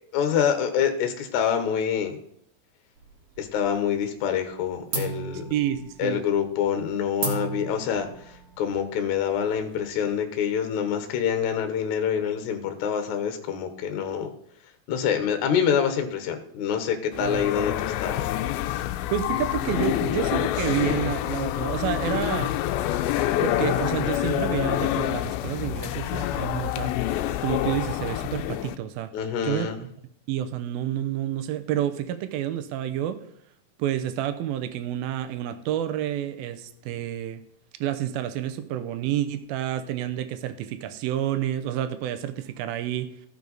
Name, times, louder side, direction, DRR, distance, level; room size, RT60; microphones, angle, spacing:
voice 1, 0.1-2.2 3.4-5.5 6.0-8.1 8.6-14.3 14.9-18.3 29.1-29.8, left 8 dB, 65° left, 7 dB, 2.1 m, -26 dB
sound 1, 3.0-3.8 4.1-4.6 4.9-10.1, right 4 dB, 50° right, 2.2 m, -36 dB
voice 2, 5.5-6.2 17.2-17.5 19.1-22.6 23.4-26.9 27.4-29.1 29.4-29.7 30.3-33.2 33.8-37.4 37.8-43.1, right 11 dB, 80° right, 9 dB, 2.6 m, -29 dB
sound 2, 17.1-28.7, left 13 dB, 85° left, 2.3 m, -27 dB
15.5 x 5.5 x 4.0 m, 0.71 s
omnidirectional pair, 4.3 m